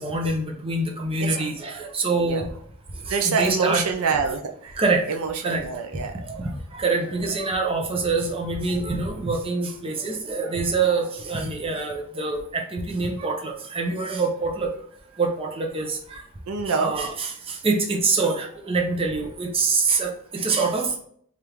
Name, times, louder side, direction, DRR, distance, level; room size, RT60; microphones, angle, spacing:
voice 1, 0.0-2.4 3.1-3.8 4.8-5.0 5.4-5.6 6.2-14.7 15.2-16.2 16.6-21.0, right 3 dB, 25° right, 1 dB, 0.6 m, -25 dB
voice 2, 1.2-2.4 3.1-6.6 7.0-7.1 10.0-10.1 10.4-10.6 12.1-12.2 13.2-13.3 13.5-13.6 16.5-16.9 18.2-18.4 19.1-19.2 19.9-20.0, right 5 dB, 70° right, 4 dB, 0.4 m, -28 dB
4.4 x 2.5 x 3.4 m, 0.64 s
head